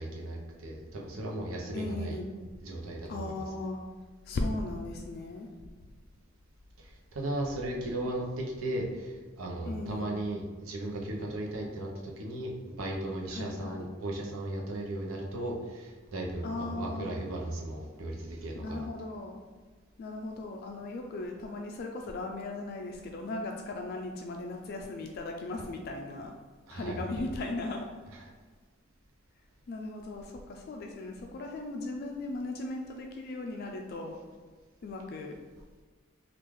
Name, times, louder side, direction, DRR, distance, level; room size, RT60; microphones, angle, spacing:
voice 1, 0.0-2.2 2.6-3.4 6.8-18.9 26.7-27.0 28.2-28.3, right 1 dB, 90° right, -1 dB, 0.7 m, -36 dB
voice 2, 1.7-2.3 3.1-3.8 4.2-5.5 9.6-10.2 13.3-13.9 16.4-17.1 18.5-19.4 20.0-26.4 26.7-27.9 29.7-34.2 34.8-35.4, left 2 dB, 50° left, 2 dB, 0.3 m, -37 dB
3.5 x 2.4 x 3.1 m, 1.4 s
head